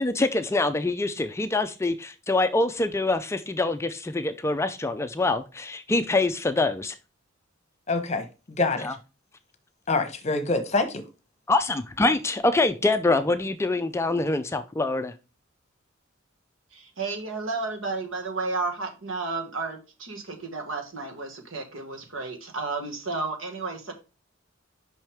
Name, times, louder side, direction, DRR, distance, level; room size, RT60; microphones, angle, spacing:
voice 1, 0.0-6.9 8.8-8.9 11.5-15.1, left 2 dB, 15° left, 0.3 m, -25 dB
voice 2, 7.9-9.0 9.9-11.0, left 3 dB, 35° left, 1.0 m, -26 dB
voice 3, 16.7-23.9, right 3 dB, 80° right, 1.5 m, -32 dB
6.0 x 5.6 x 3.4 m
head